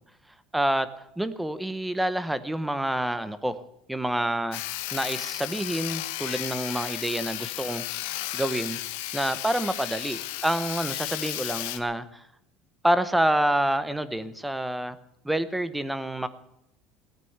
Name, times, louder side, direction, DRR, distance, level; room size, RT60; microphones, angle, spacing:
voice 1, 0.5-0.9 1.2-3.6 3.9-4.6 4.9-8.8 9.1-12.3 12.8-15.0 15.2-16.3, right 1 dB, 5° right, 14 dB, 0.9 m, -27 dB
Sawing, 4.5-11.8, left 15 dB, 90° left, 1.3 m, -34 dB
18.0 x 9.2 x 8.0 m, 0.82 s
cardioid pair, 155°, 0 cm